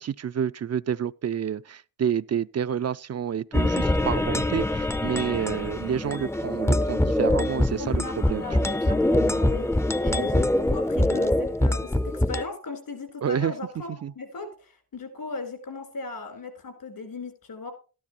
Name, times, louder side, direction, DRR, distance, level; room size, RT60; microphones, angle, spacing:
voice 1, 0.0-8.4 8.7-8.8 13.2-13.5 14.0-14.1, right 8 dB, 50° right, 0.4 m, -29 dB
sound 1, 3.5-12.4, left 1 dB, 10° left, 0.5 m, -24 dB
voice 2, 7.8-17.7, left 4 dB, 80° left, 3.8 m, -37 dB
12.5 x 12.5 x 2.9 m
cardioid pair, 55°, 34 cm